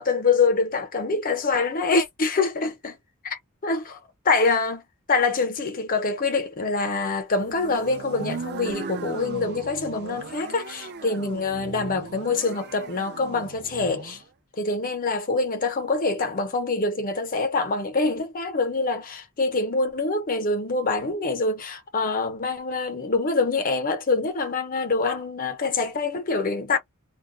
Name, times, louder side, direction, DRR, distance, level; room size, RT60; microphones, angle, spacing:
voice 1, 0.0-3.0 3.2-4.8 5.1-14.2 14.6-26.8, left 3 dB, 40° left, 0.7 m, -25 dB
sound 1, 7.4-14.2, right 4 dB, 50° right, 0.5 m, -38 dB
2.3 x 2.1 x 3.8 m
head